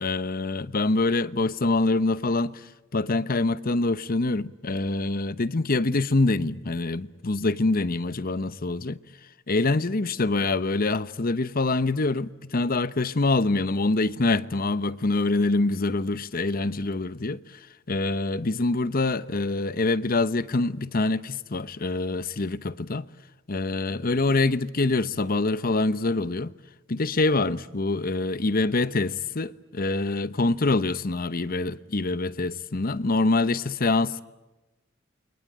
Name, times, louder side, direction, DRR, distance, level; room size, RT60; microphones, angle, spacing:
voice 1, 0.0-9.0 9.5-17.4 17.9-23.1 23.5-26.5 26.9-34.2, left 2 dB, 45° left, 0.9 m, -25 dB
29.0 x 23.5 x 8.8 m
head